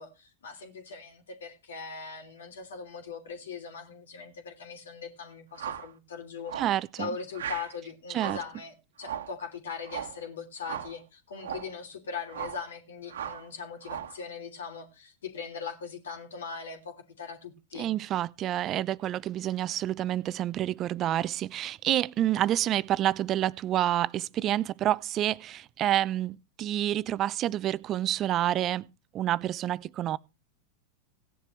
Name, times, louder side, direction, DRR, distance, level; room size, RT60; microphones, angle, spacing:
voice 1, 0.0-6.6 7.0-17.9, left 5 dB, 75° left, 3.0 m, -40 dB
sound 1, 5.5-5.9 6.5-6.8 7.3-7.7 8.1-8.5 9.0-9.4 9.9-10.2 10.6-11.0 11.4-11.7 12.3-12.7 13.1-13.5 13.8-14.2, right 9 dB, 75° right, 1.4 m, -37 dB
voice 2, 6.6-7.1 8.1-8.4 17.7-28.9 29.1-30.2, right 12 dB, 35° right, 0.5 m, -28 dB
17.0 x 10.5 x 3.2 m
hypercardioid pair, 95°, 0 cm